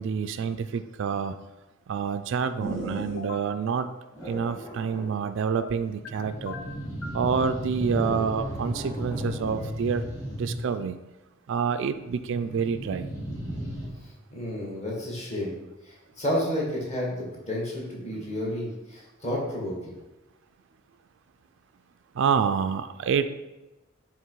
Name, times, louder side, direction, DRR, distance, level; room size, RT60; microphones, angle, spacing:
voice 1, 0.0-1.4 1.9-3.9 4.3-6.6 7.1-10.0 10.4-11.0 11.5-13.1 22.1-23.2, right 6 dB, 60° right, 10 dB, 0.3 m, -27 dB
sound 1, 2.6-3.3 4.2-5.1 5.9-10.8 12.1-13.9, equal, 15° left, 1.6 m, -34 dB
sound 2, 3.1-3.5 5.5-6.1 6.4-7.2, left 4 dB, 80° left, 0.7 m, -39 dB
voice 2, 14.0-15.5 15.8-19.9, left 1 dB, 35° left, -4 dB, 1.8 m, -31 dB
7.4 x 3.1 x 4.6 m, 1.1 s
head